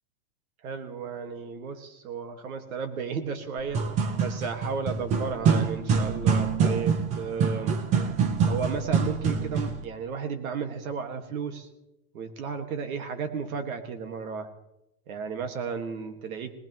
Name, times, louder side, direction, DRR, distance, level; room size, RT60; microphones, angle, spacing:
voice 1, 0.6-3.8 4.2-7.7 8.5-11.7 12.1-14.5 15.1-16.5, right 5 dB, 75° right, 7 dB, 1.9 m, -33 dB
sound 1, 3.6-9.8, right 5 dB, 15° right, 0.5 m, -25 dB
19.0 x 18.5 x 3.1 m, 0.92 s
supercardioid pair, 160°, 43 cm